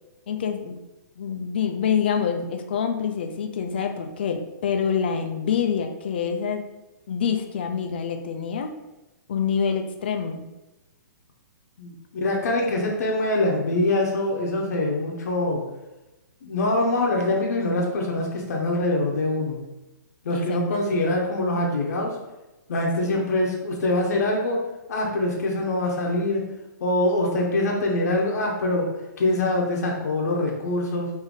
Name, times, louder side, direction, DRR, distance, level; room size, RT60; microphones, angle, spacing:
voice 1, 0.3-0.8 1.2-6.6 7.1-8.7 9.3-10.5 20.3-20.8 23.0-23.1, left 7 dB, 30° left, 6 dB, 0.3 m, -26 dB
voice 2, 11.8-15.6 16.4-19.6 20.2-22.2 22.7-24.6 24.9-26.4 26.8-28.9 29.2-31.1, left 2 dB, 55° left, -1 dB, 0.7 m, -24 dB
3.8 x 2.6 x 3.6 m, 1.0 s
hypercardioid pair, 175°, 11 cm